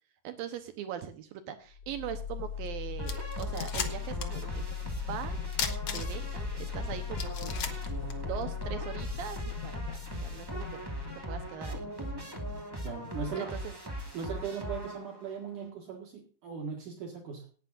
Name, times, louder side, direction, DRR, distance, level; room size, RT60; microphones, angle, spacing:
voice 1, 0.2-5.4 5.9-7.7 8.2-10.8 11.3-12.2 13.4-13.7, right 9 dB, 75° right, 9 dB, 2.6 m, -41 dB
sound 1, 1.7-13.6, left 8 dB, 75° left, 1.5 m, -39 dB
sound 2, 2.7-2.8 3.0-4.4 4.7-4.8 5.5-6.4 6.8-6.9 7.2-8.7, left 7 dB, 55° left, 1.8 m, -36 dB
sound 3, 3.0-15.4, equal, 10° right, 1.6 m, -39 dB
voice 2, 12.8-13.6 14.1-17.5, right 6 dB, 60° right, 2 dB, 3.1 m, -38 dB
18.5 x 11.5 x 2.6 m, 0.40 s
omnidirectional pair, 4.3 m